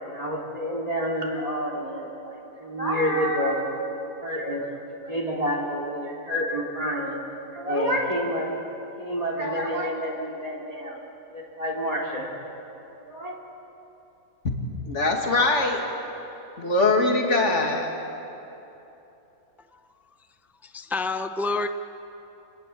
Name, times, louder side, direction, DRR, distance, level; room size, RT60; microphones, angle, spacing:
voice 1, 0.0-3.7 4.2-7.2 7.5-8.6 9.0-11.0 11.3-12.3 12.9-13.4, equal, 25° right, -1 dB, 3.7 m, -28 dB
voice 2, 14.9-15.8 16.6-17.9, left 2 dB, 50° left, 1 dB, 2.8 m, -22 dB
voice 3, 20.7-21.7, left 3 dB, ahead, 8 dB, 0.5 m, -27 dB
28.0 x 21.0 x 8.6 m, 3.0 s
omnidirectional pair, 1.6 m